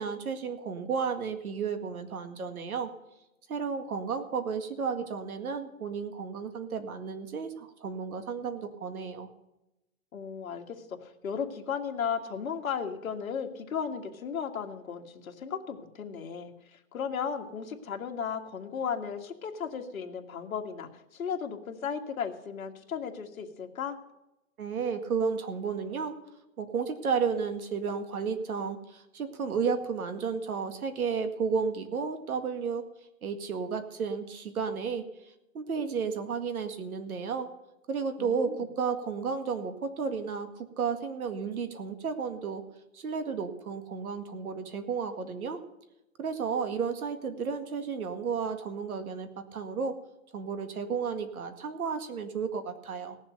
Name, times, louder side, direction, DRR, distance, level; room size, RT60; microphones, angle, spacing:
voice 1, 0.0-2.9 3.5-9.3 24.6-26.1 26.6-32.8 33.2-35.0 35.5-37.5 37.9-42.6 42.9-45.6 46.2-50.0 50.3-53.2, right 5 dB, 85° right, 8 dB, 2.0 m, -32 dB
voice 2, 10.1-24.0 38.2-38.7, left 7 dB, 75° left, 3 dB, 1.8 m, -35 dB
17.5 x 7.3 x 6.7 m, 0.93 s
hypercardioid pair, 180°, 42 cm